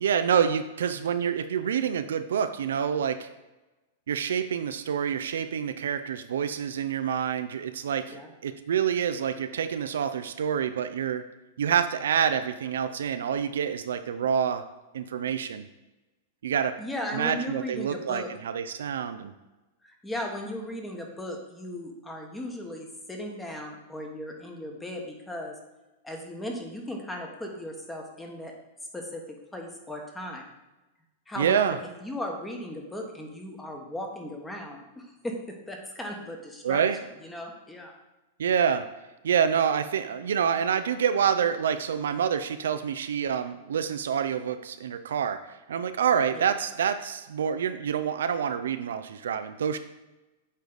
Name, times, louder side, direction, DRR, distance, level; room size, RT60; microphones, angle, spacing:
voice 1, 0.0-3.3 4.1-8.2 8.4-11.2 11.6-14.6 14.9-15.7 16.4-16.8 17.1-19.3 31.4-31.8 36.6-37.0 38.4-38.9 39.2-49.8, right 8 dB, 75° right, 10 dB, 0.4 m, -27 dB
voice 2, 16.8-18.3 19.8-25.5 26.0-28.5 28.9-29.2 29.5-30.5 31.3-35.4 35.7-36.8 37.2-37.9 46.3-46.5, left 1 dB, 10° left, 1 dB, 1.2 m, -37 dB
8.3 x 3.2 x 3.9 m, 1.1 s
hypercardioid pair, 110°, 0 cm